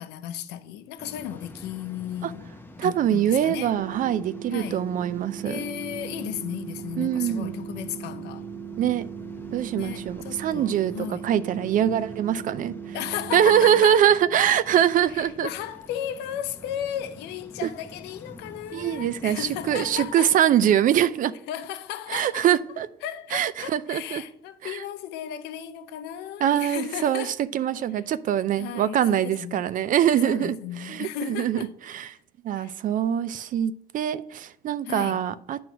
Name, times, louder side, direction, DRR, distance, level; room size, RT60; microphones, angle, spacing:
voice 1, 0.0-2.5 2.8-3.7 4.5-4.8 5.4-8.5 9.8-11.2 12.9-14.0 15.1-20.3 21.5-22.5 23.0-27.4 28.6-29.7 30.2-31.7 32.6-32.8 34.9-35.2, left 11 dB, 90° left, 0.6 m, -35 dB
Waves surf, 1.0-20.1, left 1 dB, 10° left, 0.8 m, -46 dB
voice 2, 2.8-5.6 7.0-7.5 8.8-9.1 9.5-13.0 13.3-15.5 17.6-17.7 18.7-21.3 22.1-22.9 23.3-24.2 24.6-24.8 26.4-32.1 32.4-35.6, right 10 dB, 55° right, 0.4 m, -23 dB
sound 1, 3.8-13.8, right 8 dB, 15° right, 0.8 m, -39 dB
8.8 x 3.1 x 6.0 m
cardioid pair, 110°, 17 cm